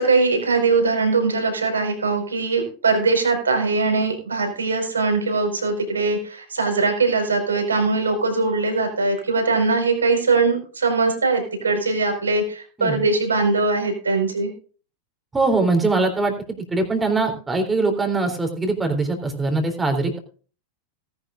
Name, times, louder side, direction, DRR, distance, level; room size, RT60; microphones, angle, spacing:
voice 1, 0.0-14.5, right 3 dB, 75° right, 3 dB, 4.7 m, -21 dB
voice 2, 15.3-16.3 16.7-20.2, right 3 dB, 10° right, 4 dB, 3.4 m, -22 dB
18.5 x 11.0 x 2.6 m, 0.39 s
figure-of-eight pair, 90°, 0 cm